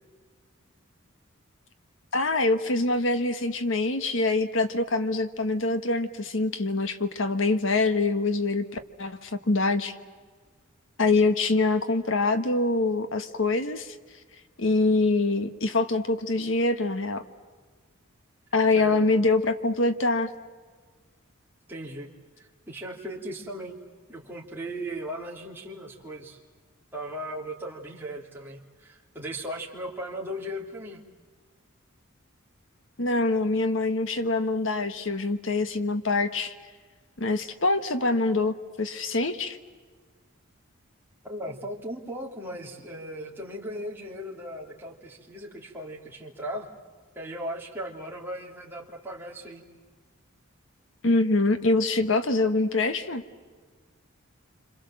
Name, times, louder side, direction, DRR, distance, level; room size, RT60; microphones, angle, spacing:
voice 1, 2.1-10.0 11.0-13.9 14.6-17.2 18.5-20.3 33.0-36.5 37.2-39.6 51.0-53.2, left 2 dB, 65° left, 10 dB, 1.4 m, -25 dB
voice 2, 18.7-19.2 21.7-22.1 22.4-23.8 24.1-26.4 26.9-31.0 41.2-46.7 47.1-49.6, equal, 10° right, -3 dB, 3.1 m, -37 dB
28.0 x 27.0 x 7.6 m, 1.5 s
head